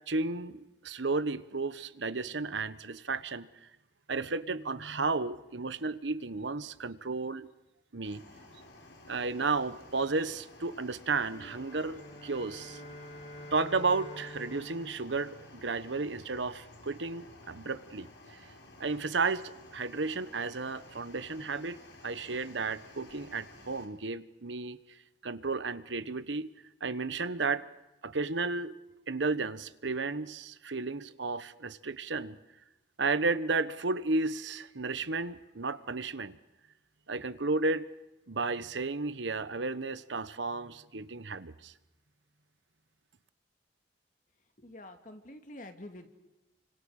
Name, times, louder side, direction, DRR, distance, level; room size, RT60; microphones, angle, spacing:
voice 1, 0.1-3.5 4.1-7.5 7.9-8.2 9.1-12.8 13.5-18.4 18.8-21.8 22.0-24.8 25.2-26.5 26.8-27.6 28.0-28.8 29.1-32.4 33.0-36.4 37.1-37.8 38.3-41.7, right 3 dB, 80° right, 13 dB, 1.1 m, -33 dB
sound 1, 8.0-23.8, left 2 dB, 75° left, 5.1 m, -54 dB
sound 2, 11.2-15.9, left 1 dB, 60° left, 5.6 m, -48 dB
voice 2, 44.6-46.1, left 1 dB, 45° left, 6 dB, 2.4 m, -47 dB
30.0 x 25.5 x 6.5 m, 0.96 s
head